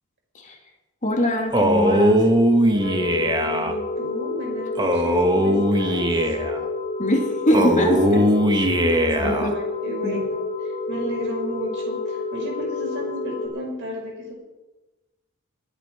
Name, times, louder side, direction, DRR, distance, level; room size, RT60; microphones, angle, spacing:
voice 1, 1.0-2.2 7.0-8.3 8.6-8.8 9.2-9.5 10.0-10.2, left 1 dB, 35° left, 2 dB, 2.6 m, -23 dB
Male speech man speaking, 1.5-3.7 4.8-6.6 7.5-9.5, equal, 20° right, 1.2 m, -20 dB
voice 2, 2.6-6.4 8.9-10.4 10.9-14.3, equal, 60° right, -1 dB, 5.5 m, -33 dB
sound 1, 2.8-13.5, left 3 dB, 55° left, 4.2 m, -29 dB
22.5 x 8.9 x 4.7 m, 1.1 s
head